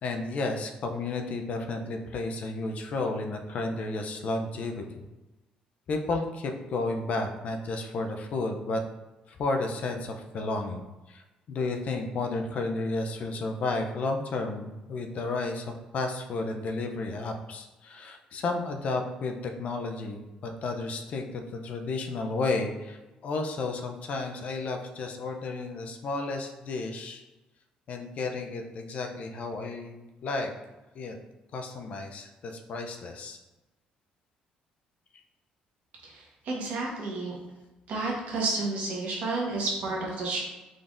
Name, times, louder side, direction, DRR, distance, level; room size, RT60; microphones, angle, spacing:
voice 1, 0.0-4.8 5.9-8.8 9.3-11.2 11.5-27.2 27.9-30.5 30.9-31.1 31.5-33.4, left 3 dB, 55° left, 4 dB, 0.5 m, -32 dB
voice 2, 36.0-37.3 37.9-40.4, right 3 dB, 65° right, -2 dB, 1.2 m, -31 dB
3.8 x 3.4 x 2.5 m, 1.1 s
cardioid pair, 90°, 3 cm